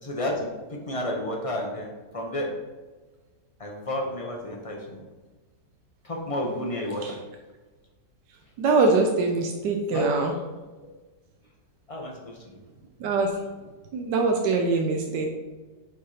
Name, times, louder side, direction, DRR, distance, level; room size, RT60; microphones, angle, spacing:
voice 1, 0.0-2.5 3.6-5.0 6.0-7.2 9.9-10.1 11.9-12.4, left 1 dB, 30° left, -1 dB, 0.6 m, -31 dB
voice 2, 8.6-10.3 13.0-13.4 13.9-15.3, right 3 dB, 75° right, 2 dB, 1.3 m, -23 dB
5.6 x 4.3 x 4.9 m, 1.3 s
omnidirectional pair, 1.9 m